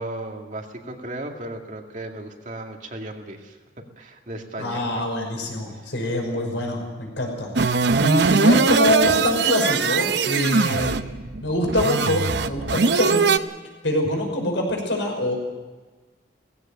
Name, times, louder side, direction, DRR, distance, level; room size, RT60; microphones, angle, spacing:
voice 1, 0.0-3.6 4.0-5.0 5.7-5.9 14.1-14.2, right 1 dB, 40° right, 3 dB, 2.2 m, -35 dB
voice 2, 4.6-7.5 8.0-11.0 11.4-13.3 13.8-15.4, left 1 dB, 85° left, 1 dB, 5.8 m, -24 dB
sound 1, 7.6-13.4, right 4 dB, 70° right, 0.7 m, -21 dB
18.5 x 16.0 x 8.8 m, 1.3 s
head